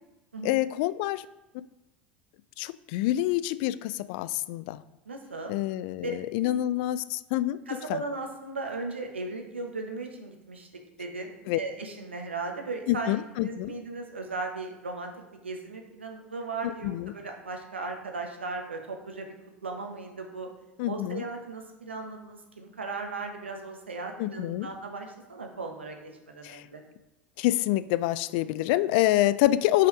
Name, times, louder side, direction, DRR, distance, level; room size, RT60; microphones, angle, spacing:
voice 1, 0.4-1.3 2.6-4.8 5.5-7.6 7.9-8.0 11.5-11.6 12.9-13.7 16.6-17.1 20.8-21.2 24.2-24.7 26.4-26.6 27.4-29.9, left 15 dB, 60° left, 16 dB, 0.3 m, -27 dB
voice 2, 5.1-5.5 6.0-6.5 7.7-13.1 13.4-15.1 15.4-19.3 19.6-20.5 20.9-26.8, right 3 dB, 85° right, 3 dB, 1.1 m, -37 dB
5.7 x 4.9 x 5.1 m, 1.0 s
figure-of-eight pair, 75°, 6 cm